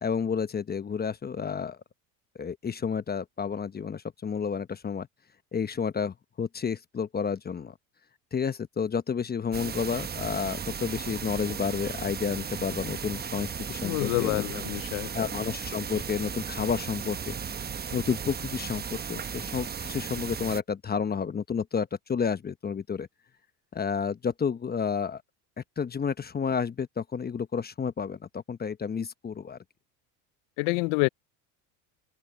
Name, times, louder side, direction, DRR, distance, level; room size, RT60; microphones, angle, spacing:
voice 1, 0.0-1.8 2.4-5.1 5.5-7.7 8.3-14.4 15.1-17.4 17.9-23.1 23.7-25.2 25.8-29.6, left 6 dB, 20° left, 1.0 m, -30 dB
sound 1, 9.5-20.6, right 7 dB, 20° right, 1.1 m, -36 dB
voice 2, 13.8-15.3 30.6-31.1, left 28 dB, 65° left, 0.6 m, -28 dB
open air
supercardioid pair, 100°, 45 cm